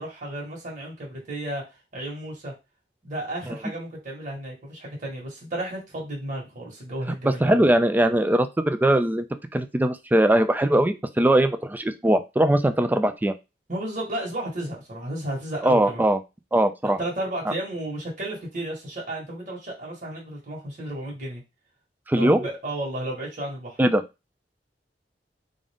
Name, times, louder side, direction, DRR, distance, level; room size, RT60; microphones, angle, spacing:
voice 1, 0.0-1.6 1.9-2.5 3.0-7.6 13.7-16.0 16.8-21.4 22.1-23.8, right 1 dB, 45° right, -3 dB, 1.5 m, -33 dB
voice 2, 7.2-9.3 9.5-13.3 15.6-16.2 16.5-17.0 17.5-17.6 22.1-22.5 23.8-24.0, right 1 dB, 10° right, 10 dB, 0.3 m, -21 dB
3.7 x 2.6 x 3.4 m, 0.25 s
head